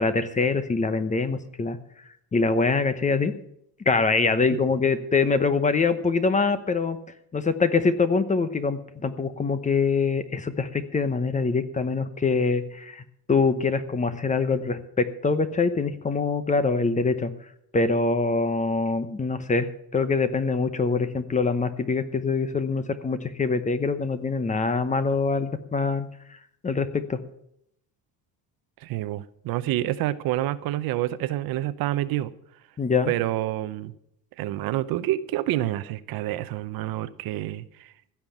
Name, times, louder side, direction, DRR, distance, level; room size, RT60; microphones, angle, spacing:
voice 1, 0.0-1.8 2.3-3.3 3.9-7.0 7.3-17.3 17.7-19.7 19.9-26.1 26.6-27.2 32.8-33.1, left 4 dB, 20° left, 0.9 m, -24 dB
voice 2, 28.8-32.3 33.1-33.9 34.4-37.9, right 14 dB, 70° right, 0.8 m, -28 dB
15.5 x 5.9 x 8.5 m
cardioid pair, 125°, 37 cm